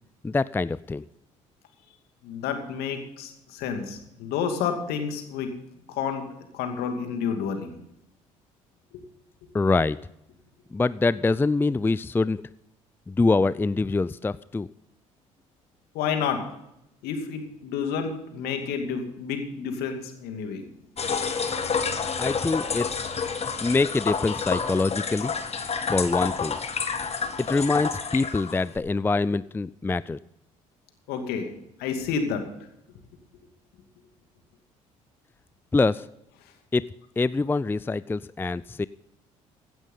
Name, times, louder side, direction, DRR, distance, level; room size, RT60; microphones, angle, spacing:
voice 1, 0.2-1.0 9.5-10.0 10.7-12.4 13.1-14.7 22.2-23.1 23.6-25.3 25.9-26.6 27.4-30.2 35.7-36.1 36.7-36.8 37.2-38.9, left 3 dB, 10° left, 18 dB, 0.4 m, -24 dB
voice 2, 2.2-5.5 5.9-6.3 6.5-7.8 8.9-9.0 15.9-16.4 17.0-20.6 31.1-31.5 31.8-32.5, left 6 dB, 65° left, 5 dB, 2.5 m, -30 dB
sound 1, 21.0-28.8, left 5 dB, 35° left, 1.9 m, -29 dB
16.0 x 12.0 x 3.8 m, 0.84 s
hypercardioid pair, 55°, 17 cm